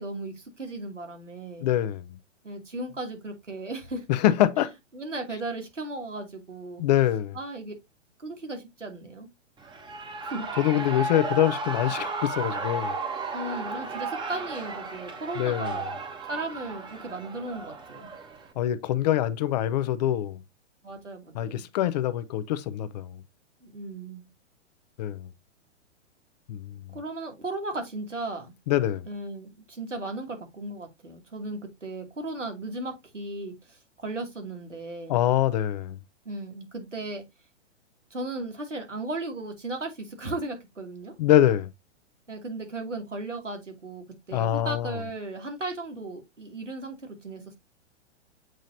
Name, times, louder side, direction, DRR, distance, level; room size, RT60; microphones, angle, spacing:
voice 1, 0.0-1.7 2.4-4.0 4.6-4.7 4.9-6.8 7.3-7.7 8.2-9.3 10.2-10.5 13.3-15.8 16.2-18.1 20.8-21.7 23.6-24.3 26.9-28.5 29.1-35.2 36.2-37.2 38.1-41.1 42.3-47.6, right 2 dB, 90° right, 2.7 m, -36 dB
voice 2, 1.6-2.2 4.1-4.7 6.8-7.4 10.6-13.0 15.4-15.8 18.6-20.4 21.3-23.2 25.0-25.3 26.5-26.8 28.7-29.1 35.1-36.0 41.2-41.7 44.3-45.0, left 12 dB, 35° left, 0.6 m, -24 dB
Shout / Cheering, 9.6-18.5, right 3 dB, 15° right, 1.1 m, -34 dB
7.7 x 5.0 x 2.7 m
figure-of-eight pair, 115°, 36 cm